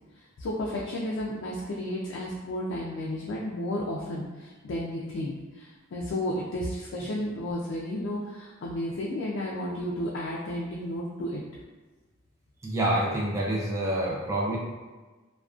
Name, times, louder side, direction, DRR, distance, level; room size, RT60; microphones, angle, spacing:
voice 1, 0.4-11.4, left 1 dB, 70° left, -4 dB, 0.3 m, -32 dB
voice 2, 12.6-14.6, right 1 dB, 15° right, -4 dB, 0.4 m, -27 dB
2.4 x 2.2 x 2.3 m, 1.3 s
head